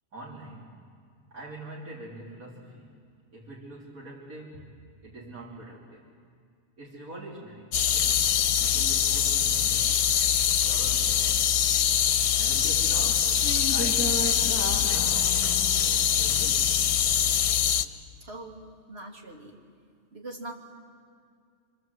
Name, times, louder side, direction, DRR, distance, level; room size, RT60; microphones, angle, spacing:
voice 1, 0.1-0.9 1.3-3.0 3.3-6.1 6.8-8.3 8.6-10.0 10.4-12.0 12.4-14.3 14.7-15.5 16.1-16.7, right 1 dB, 70° right, -5 dB, 3.3 m, -44 dB
sound 1, 7.7-17.8, left 9 dB, 85° left, 1.4 m, -24 dB
sound 2, 12.9-17.3, equal, 10° right, 1.9 m, -36 dB
voice 2, 18.2-19.6 20.1-20.5, right 2 dB, 45° right, -1 dB, 3.0 m, -42 dB
27.0 x 26.5 x 7.9 m, 2.3 s
omnidirectional pair, 1.6 m